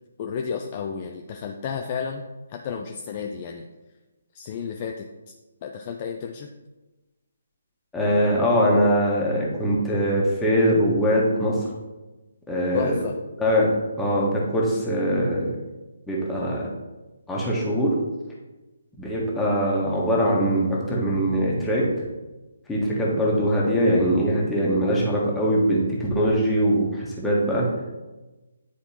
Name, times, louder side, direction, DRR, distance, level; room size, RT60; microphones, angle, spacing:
voice 1, 0.2-2.2 2.5-3.7 4.3-5.1 5.6-6.5 12.7-13.1, left 6 dB, 30° left, 3 dB, 0.4 m, -32 dB
voice 2, 7.9-11.6 12.5-12.9 13.4-13.7 14.0-15.5 16.1-16.6 17.3-17.9 19.0-21.8 22.7-27.6, equal, 5° left, -5 dB, 1.4 m, -22 dB
9.8 x 4.3 x 2.9 m, 1.1 s
figure-of-eight pair, 140°, 0 cm